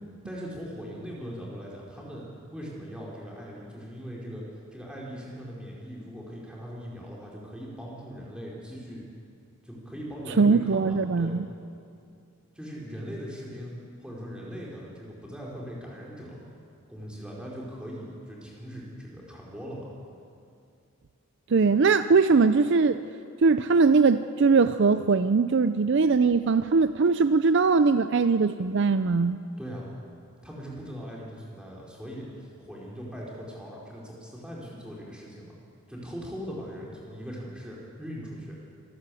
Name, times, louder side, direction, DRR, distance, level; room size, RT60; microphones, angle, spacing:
voice 1, 0.2-2.2 2.5-4.5 4.7-9.0 9.6-11.3 12.5-13.7 14.0-16.4 16.9-19.9 29.6-29.9 30.4-35.6 35.9-38.6, equal, 5° right, -4 dB, 4.4 m, -40 dB
voice 2, 10.4-11.4 21.5-23.0 23.4-29.4, right 4 dB, 55° right, 12 dB, 0.5 m, -21 dB
25.5 x 13.0 x 8.4 m, 2.5 s
head